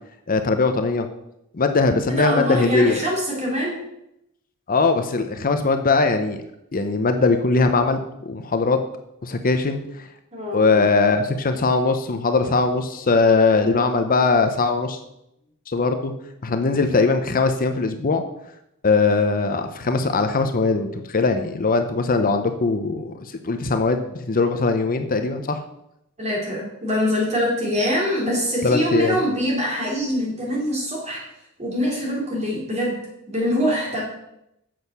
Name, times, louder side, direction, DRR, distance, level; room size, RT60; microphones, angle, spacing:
voice 1, 0.3-1.1 1.5-3.0 4.7-6.4 6.7-8.0 8.3-8.8 9.2-9.8 10.5-15.0 15.7-16.1 16.4-18.2 18.8-23.1 23.4-25.6 28.6-29.2, left 3 dB, 40° left, 7 dB, 0.7 m, -20 dB
voice 2, 2.1-3.8 10.3-10.9 26.2-31.2 31.6-32.9 33.3-34.0, equal, 30° right, -2 dB, 3.4 m, -24 dB
7.7 x 6.3 x 6.8 m, 0.83 s
head